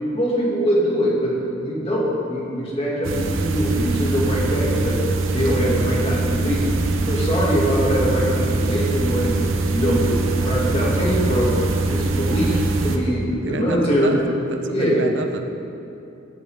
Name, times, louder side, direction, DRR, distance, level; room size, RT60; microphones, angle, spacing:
voice 1, 0.1-5.0 5.3-6.8 7.1-9.4 9.7-14.1 14.7-15.0, equal, 30° left, -5 dB, 2.3 m, -22 dB
sound 1, 3.0-13.0, right 3 dB, 90° right, 0.9 m, -23 dB
voice 2, 13.4-14.2 14.5-15.4, right 3 dB, 65° right, 6 dB, 0.7 m, -28 dB
12.0 x 11.5 x 3.7 m, 2.7 s
head